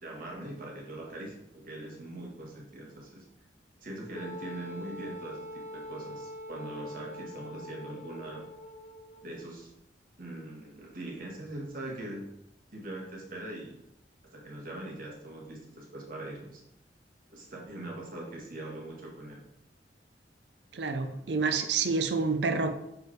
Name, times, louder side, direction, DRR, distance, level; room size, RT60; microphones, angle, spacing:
voice 1, 0.0-3.2 3.8-5.4 5.7-8.4 9.2-9.7 10.2-12.3 12.7-13.7 14.3-16.6 17.3-19.4, right 1 dB, 55° right, 1.6 m, -41 dB
Wind instrument woodwind instrument, 4.2-9.3, left 1 dB, 45° left, 0.6 m, -43 dB
voice 2, 20.7-22.7, right 4 dB, 70° right, 0.6 m, -28 dB
6.2 x 4.8 x 3.3 m
head